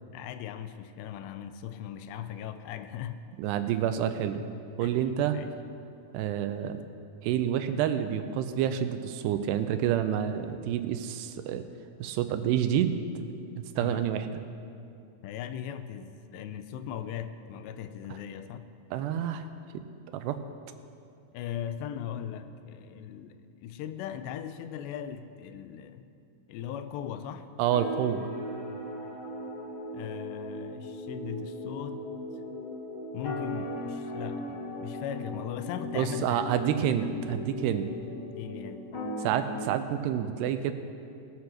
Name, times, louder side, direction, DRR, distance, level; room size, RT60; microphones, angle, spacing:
voice 1, 0.1-3.2 4.8-5.0 5.3-5.5 13.8-14.0 15.2-18.7 21.3-26.1 26.5-27.5 29.9-32.0 33.1-37.5 38.4-38.9, left 9 dB, 85° left, 10 dB, 2.8 m, -39 dB
voice 2, 3.4-4.4 4.8-5.4 6.1-6.8 7.2-11.6 12.0-12.9 13.6-14.4 18.9-19.5 20.1-20.4 27.6-28.3 36.0-37.9 39.2-40.7, right 10 dB, 85° right, 9 dB, 2.7 m, -28 dB
sound 1, 27.7-39.6, left 1 dB, 45° left, 1.9 m, -38 dB
20.0 x 8.2 x 6.4 m, 2.6 s
omnidirectional pair, 4.9 m